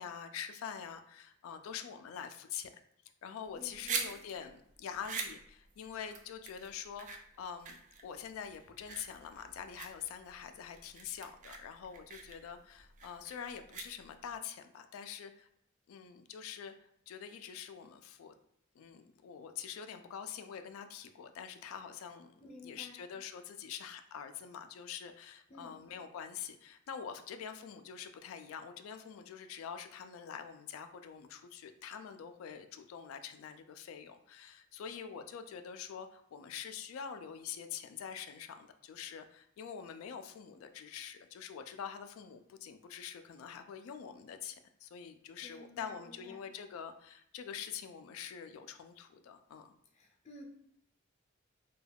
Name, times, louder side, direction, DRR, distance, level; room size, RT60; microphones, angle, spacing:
voice 1, 0.0-2.7 3.2-15.5 15.9-18.3 18.8-22.3 22.6-49.8, left 7 dB, 85° left, 8 dB, 0.3 m, -45 dB
voice 2, 3.5-4.1 22.4-23.0 25.5-25.8 45.4-46.3 49.9-50.4, left 2 dB, 35° left, 0 dB, 0.5 m, -53 dB
sound 1, 3.5-14.4, right 5 dB, 40° right, 0.3 m, -44 dB
2.2 x 2.2 x 3.3 m, 0.73 s
head